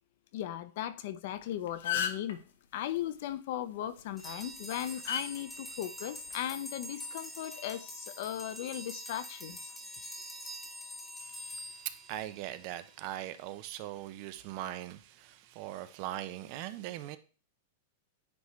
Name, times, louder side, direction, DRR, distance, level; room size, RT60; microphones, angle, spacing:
voice 1, 0.3-2.4 2.7-9.7, left 12 dB, 55° left, 0.5 m, -37 dB
sound 1, 1.3-1.4 1.7-2.3 4.0-4.2 5.1-5.2 6.3-6.5, left 8 dB, 85° left, 0.8 m, -32 dB
sound 2, 4.2-12.7, equal, 5° left, 1.0 m, -45 dB
voice 2, 11.2-17.2, right 13 dB, 40° right, 0.4 m, -41 dB
9.3 x 3.2 x 3.1 m
supercardioid pair, 165°, 0 cm